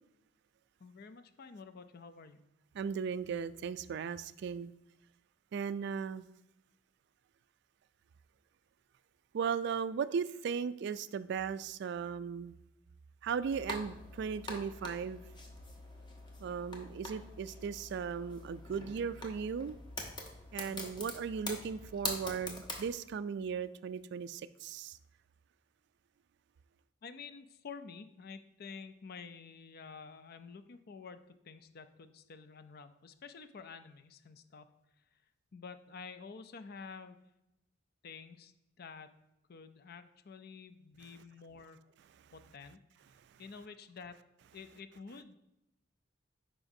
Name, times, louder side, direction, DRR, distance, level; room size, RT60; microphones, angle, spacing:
voice 1, 0.8-2.4 20.7-20.9 27.0-34.7 35.5-37.2 38.0-39.2 39.5-41.8 42.3-42.8 43.4-44.2 44.5-45.4, left 5 dB, 55° left, 11 dB, 0.5 m, -50 dB
voice 2, 2.8-4.7 5.5-6.2 9.3-12.5 13.2-15.2 16.4-19.8 20.5-25.0, right 6 dB, 65° right, 15 dB, 0.3 m, -37 dB
sound 1, 13.4-22.9, left 2 dB, 25° left, 1.0 m, -44 dB
11.0 x 4.9 x 2.7 m, 0.90 s
head